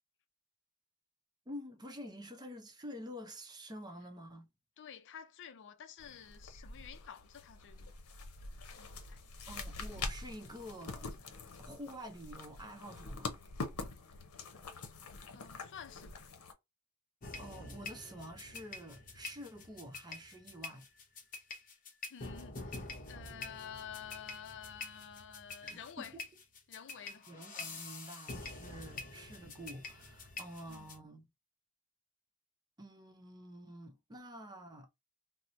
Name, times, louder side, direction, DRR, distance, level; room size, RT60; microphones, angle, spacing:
voice 1, 1.5-4.5 8.9-9.2 9.5-11.1 11.6-13.4 17.4-20.9 25.6-26.2 27.0-31.3 32.8-34.9, equal, 20° right, 0.6 m, -48 dB
voice 2, 4.8-8.0 8.8-9.5 15.3-16.3 22.1-26.2 26.7-27.3 30.7-30.9, left 8 dB, 55° left, 0.4 m, -50 dB
sound 1, 6.0-16.5, left 3 dB, 80° left, 0.7 m, -45 dB
sound 2, 17.2-31.0, left 3 dB, 40° left, 0.9 m, -47 dB
2.9 x 2.0 x 3.7 m
head